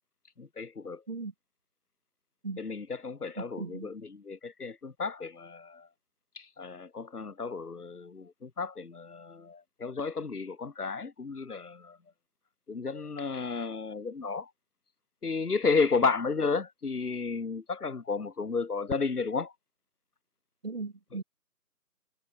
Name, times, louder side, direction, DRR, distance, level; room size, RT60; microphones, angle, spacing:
voice 1, 0.4-1.0 2.6-5.9 6.3-12.0 12.7-14.5 15.2-19.5, left 4 dB, 65° left, 1.5 m, -32 dB
voice 2, 3.4-3.9 20.6-21.2, right 3 dB, 35° right, 4.4 m, -37 dB
figure-of-eight pair, 170°, 49 cm